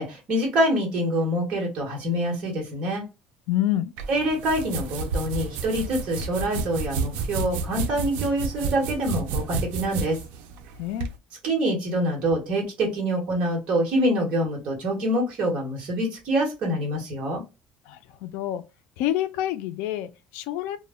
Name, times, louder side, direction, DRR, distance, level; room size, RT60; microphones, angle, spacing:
voice 1, 0.0-3.0 4.1-10.2 11.4-17.4, right 1 dB, 40° right, 1.1 m, -25 dB
voice 2, 3.5-3.9 10.8-11.1 17.9-18.6 19.0-20.8, left 13 dB, 75° left, 0.3 m, -27 dB
sound 1, 4.0-11.1, right 4 dB, 85° right, 0.4 m, -31 dB
2.1 x 2.1 x 3.4 m
cardioid pair, 180°, 3 cm